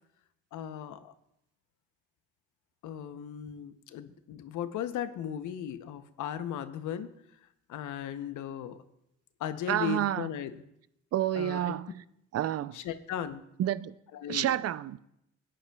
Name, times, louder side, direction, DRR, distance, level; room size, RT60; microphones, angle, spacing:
voice 1, 0.5-1.1 2.8-7.1 7.7-8.8 9.4-10.6 11.3-11.8 12.7-13.4 14.1-14.5, left 9 dB, 80° left, 0.7 m, -37 dB
voice 2, 9.7-10.3 11.1-12.0 12.3-12.8 13.6-13.9 14.3-15.0, right 12 dB, 55° right, 0.5 m, -29 dB
17.5 x 10.0 x 2.3 m
cardioid pair, 90°, 30 cm